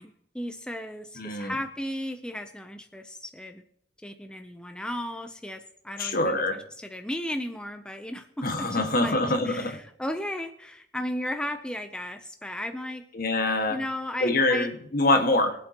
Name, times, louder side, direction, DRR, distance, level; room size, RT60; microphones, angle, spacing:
voice 1, 0.0-3.6 4.0-13.1 13.7-14.7, left 1 dB, 5° left, 6 dB, 0.6 m, -35 dB
voice 2, 1.2-1.5 6.0-6.6 8.4-9.8 13.1-13.8 14.2-15.5, left 2 dB, 55° left, 5 dB, 1.7 m, -24 dB
23.5 x 7.8 x 3.0 m, 0.69 s
head